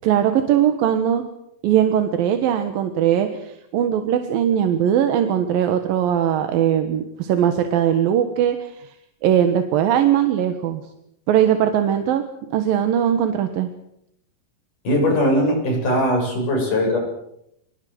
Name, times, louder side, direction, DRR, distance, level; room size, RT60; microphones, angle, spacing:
voice 1, 0.0-1.3 1.6-8.9 9.2-10.8 11.3-13.7, right 10 dB, 90° right, 7 dB, 3.2 m, -20 dB
voice 2, 14.8-17.0, equal, 65° left, 1 dB, 9.3 m, -20 dB
25.0 x 21.0 x 7.9 m, 0.78 s
omnidirectional pair, 3.9 m